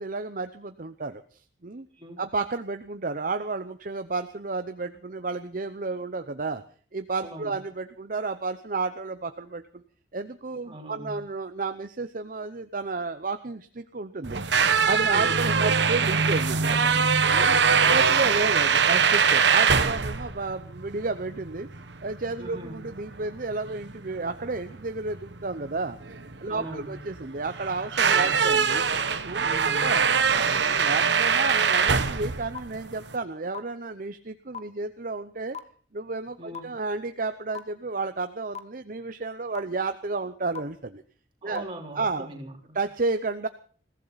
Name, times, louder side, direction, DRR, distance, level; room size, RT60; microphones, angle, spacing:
voice 1, 0.0-1.9 2.2-6.6 6.9-9.8 10.1-14.4 14.9-16.9 17.3-17.5 17.9-21.7 22.0-26.0 26.4-28.8 29.2-35.6 35.9-41.0 41.4-41.6 42.0-42.3 42.7-43.5, right 3 dB, 45° right, 9 dB, 0.8 m, -32 dB
voice 2, 7.2-7.5 10.6-11.2 15.0-15.4 17.3-17.9 22.4-22.8 26.5-26.9 28.1-28.5 29.4-30.0 36.4-36.7 41.4-42.8, right 1 dB, 30° right, 0 dB, 3.7 m, -40 dB
sound 1, 14.2-33.2, right 6 dB, 65° right, 1.3 m, -23 dB
sound 2, 32.5-32.6 33.5-33.6 34.5-34.6 35.5-35.6 36.5-36.6 37.5-37.6 38.5-38.6 39.5-39.6 40.5-40.6 41.5-41.6, left 7 dB, 35° left, 1.1 m, -34 dB
21.5 x 15.5 x 4.1 m, 0.43 s
head